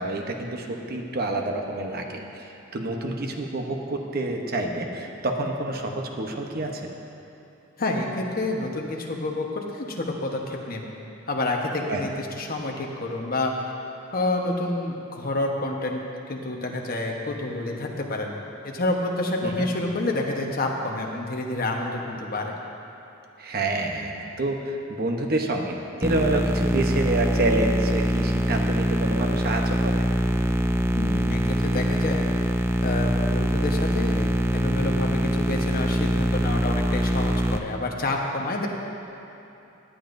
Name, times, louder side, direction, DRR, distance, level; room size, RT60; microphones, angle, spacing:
voice 1, 0.0-2.4 2.7-6.9 11.9-12.0 19.4-19.7 23.4-30.0, right 2 dB, 50° right, 2 dB, 0.9 m, -28 dB
voice 2, 7.8-10.9 11.3-13.7 14.1-16.0 16.3-18.3 18.6-22.5 31.0-32.3 32.8-38.7, left 2 dB, 45° left, 1 dB, 1.1 m, -28 dB
sound 1, 26.0-37.6, equal, 15° right, 0.4 m, -24 dB
18.0 x 9.8 x 2.6 m, 3.0 s
head